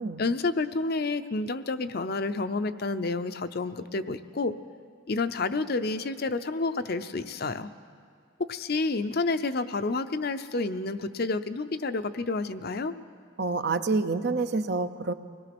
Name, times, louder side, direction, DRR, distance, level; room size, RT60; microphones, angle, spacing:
voice 1, 0.2-4.6 5.1-7.7 8.4-12.9, left 3 dB, 50° left, 10 dB, 0.6 m, -29 dB
voice 2, 13.4-15.1, right 3 dB, 50° right, 10 dB, 0.7 m, -27 dB
25.0 x 18.0 x 6.1 m, 2.2 s
head